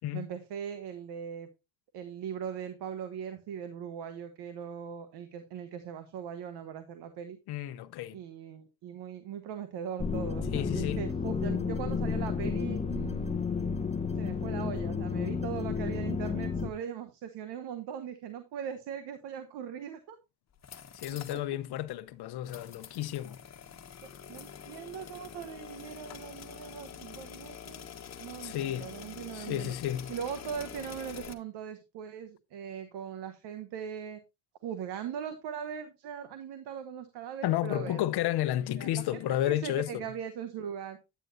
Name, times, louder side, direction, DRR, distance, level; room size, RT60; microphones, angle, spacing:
voice 1, 0.1-1.5 1.9-7.4 8.1-13.4 14.1-20.2 21.3-21.4 24.3-27.8 28.2-29.8 30.1-34.2 34.6-38.0 38.7-41.0, right 8 dB, 80° right, 1.2 m, -40 dB
voice 2, 7.5-8.2 10.5-11.0 20.9-23.4 28.4-28.9 29.3-30.1 37.4-40.1, left 13 dB, 70° left, 0.8 m, -32 dB
sound 1, 10.0-16.7, left 5 dB, 15° left, 0.9 m, -32 dB
sound 2, 20.5-21.4 21.8-21.9 22.5-31.3, left 8 dB, 40° left, 1.3 m, -46 dB
9.2 x 9.0 x 2.6 m
supercardioid pair, 80°, 40 cm